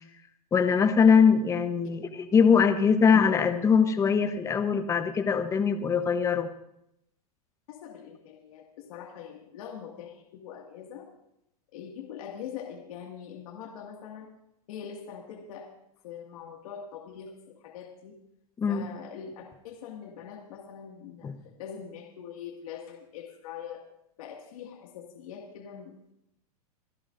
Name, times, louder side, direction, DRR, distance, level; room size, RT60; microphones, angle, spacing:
voice 1, 0.5-6.5 18.6-18.8 21.2-21.3, left 6 dB, 15° left, 9 dB, 0.9 m, -22 dB
voice 2, 7.7-11.1 11.7-14.3 14.7-15.7 16.0-18.2 18.7-23.8 24.2-26.0, left 8 dB, 65° left, 0 dB, 2.1 m, -43 dB
27.5 x 11.0 x 2.6 m, 0.79 s
supercardioid pair, 140°, 19 cm